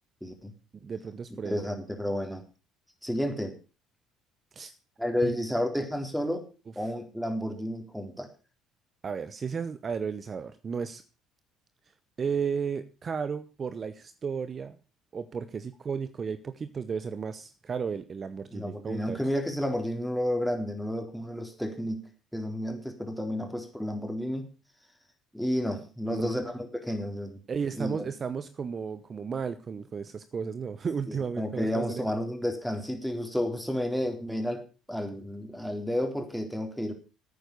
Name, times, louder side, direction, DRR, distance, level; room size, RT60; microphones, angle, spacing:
voice 1, 0.2-0.5 1.4-2.4 3.0-3.5 5.0-6.5 6.8-8.3 18.5-24.5 25.3-27.4 27.7-28.0 31.1-36.9, equal, ahead, 4 dB, 3.8 m, -31 dB
voice 2, 0.8-1.6 4.5-4.7 5.2-5.3 9.0-11.0 12.2-14.8 15.1-19.2 26.1-26.3 27.5-32.0, right 6 dB, 40° right, 12 dB, 0.9 m, -34 dB
11.5 x 9.2 x 6.6 m, 0.34 s
hypercardioid pair, 60°, 0 cm